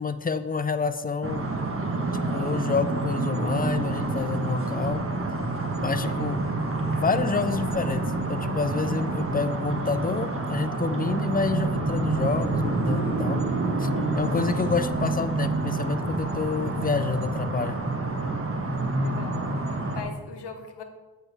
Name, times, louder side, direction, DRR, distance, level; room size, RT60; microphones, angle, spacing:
voice 1, 0.0-1.4 2.1-5.0 5.8-6.4 6.9-8.0 8.3-13.4 13.8-13.9 14.2-17.8, left 4 dB, 20° left, 11 dB, 0.5 m, -28 dB
sound 1, 1.2-20.0, right 2 dB, 35° right, 1.3 m, -28 dB
voice 2, 6.0-6.4 19.0-20.8, left 5 dB, 80° left, 6 dB, 1.0 m, -41 dB
7.6 x 4.6 x 4.7 m, 1.3 s
cardioid pair, 55°, 40 cm